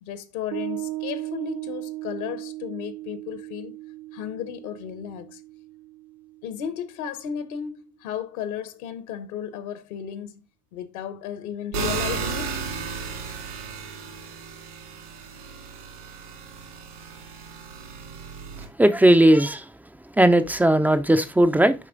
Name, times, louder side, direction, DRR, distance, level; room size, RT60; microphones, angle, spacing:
voice 1, 0.0-3.8 4.1-5.4 6.4-10.4 10.7-12.9, left 9 dB, 65° left, 1.0 m, -34 dB
Piano, 0.5-7.3, right 17 dB, 40° right, 0.7 m, -37 dB
sound 1, 11.7-18.7, right 6 dB, 80° right, 2.8 m, -34 dB
voice 2, 18.8-19.6 20.2-21.7, right 1 dB, 5° right, 0.3 m, -17 dB
6.7 x 4.8 x 3.7 m
hypercardioid pair, 80°, 46 cm